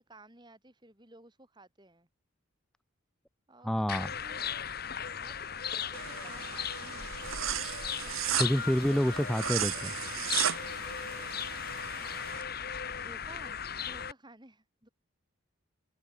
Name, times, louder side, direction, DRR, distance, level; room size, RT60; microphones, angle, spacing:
voice 1, 0.0-2.1 3.5-4.4 5.1-7.6 13.0-14.9, right 2 dB, 20° right, 3.0 m, -55 dB
voice 2, 3.6-4.1 8.1-9.9, equal, ahead, 0.4 m, -29 dB
sound 1, 3.9-14.1, left 8 dB, 45° left, 1.5 m, -37 dB
sound 2, 5.9-12.4, right 10 dB, 75° right, 1.5 m, -36 dB
sound 3, 7.2-12.3, right 4 dB, 60° right, 2.4 m, -60 dB
head